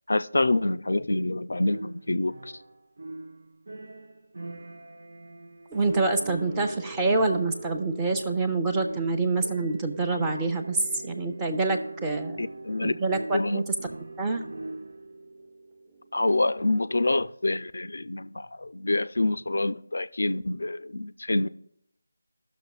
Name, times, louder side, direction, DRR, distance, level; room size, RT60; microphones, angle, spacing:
voice 1, 0.1-2.5 12.4-12.9 13.3-13.6 16.1-21.5, left 2 dB, 65° left, 0.3 m, -26 dB
sound 1, 1.6-15.2, right 2 dB, 50° right, 0.6 m, -42 dB
voice 2, 5.7-12.4 12.8-13.6 14.2-14.4, right 3 dB, 10° right, 0.6 m, -26 dB
sound 2, 5.7-16.6, right 3 dB, 25° right, 1.1 m, -44 dB
16.0 x 6.1 x 2.4 m
figure-of-eight pair, 165°, 0 cm